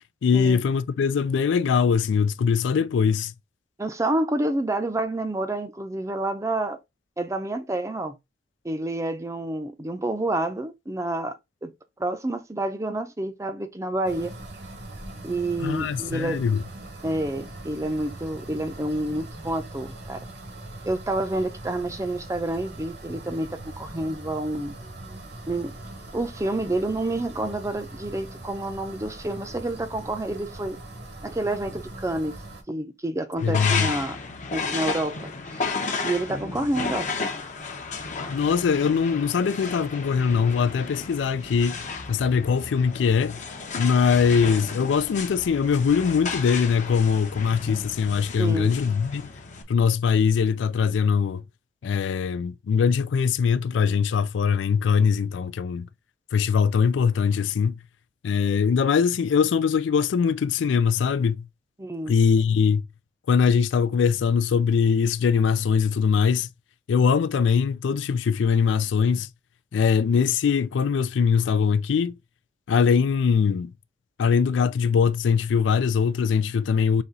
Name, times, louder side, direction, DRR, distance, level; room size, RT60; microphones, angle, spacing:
voice 1, 0.2-3.3 15.6-16.6 33.4-33.9 38.3-41.8 42.1-43.4 43.8-49.2 49.7-51.4 51.8-55.9 56.3-57.8 58.2-61.5 62.1-62.8 63.3-66.5 66.9-69.3 69.7-72.1 72.7-73.7 74.2-77.0, left 6 dB, 85° left, 0.3 m, -22 dB
voice 2, 3.8-6.8 7.2-8.1 8.6-11.3 11.6-11.7 12.0-14.3 15.2-16.4 17.0-20.2 20.8-24.7 25.5-25.7 26.1-30.8 31.2-32.4 32.7-34.2 34.5-35.6 36.0-37.1 48.4-48.7 61.8-62.2, right 1 dB, 15° right, 0.5 m, -28 dB
sound 1, 14.0-32.6, right 2 dB, 65° right, 1.2 m, -41 dB
sound 2, 33.4-49.6, left 4 dB, 45° left, 0.7 m, -33 dB
4.1 x 3.0 x 3.6 m
head